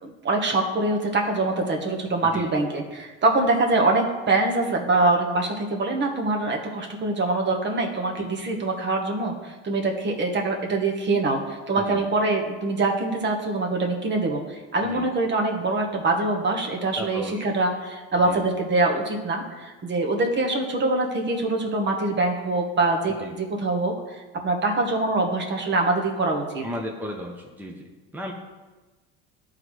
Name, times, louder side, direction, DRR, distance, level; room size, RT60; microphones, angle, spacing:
voice 1, 0.0-26.6, right 2 dB, 35° right, 1 dB, 1.3 m, -24 dB
voice 2, 17.0-17.4 18.2-18.4 23.2-23.3 26.6-28.3, equal, 5° right, 0 dB, 0.9 m, -35 dB
11.5 x 4.0 x 3.2 m, 1.2 s
hypercardioid pair, 75°, 31 cm